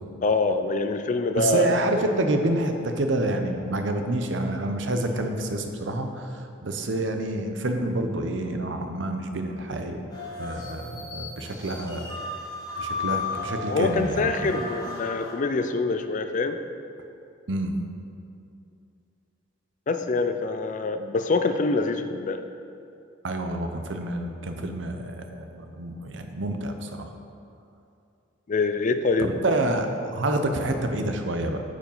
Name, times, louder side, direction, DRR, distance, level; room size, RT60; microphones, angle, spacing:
voice 1, 0.2-1.8 13.7-16.6 19.9-22.4 28.5-29.4, left 3 dB, 40° left, 8 dB, 0.4 m, -25 dB
voice 2, 1.4-10.0 10.4-12.2 12.8-14.6 17.5-17.7 23.2-27.1 29.2-31.6, right 1 dB, 65° right, 5 dB, 0.7 m, -28 dB
sound 1, 10.1-15.3, left 4 dB, 20° left, 1.4 m, -34 dB
9.0 x 5.0 x 5.5 m, 2.6 s
head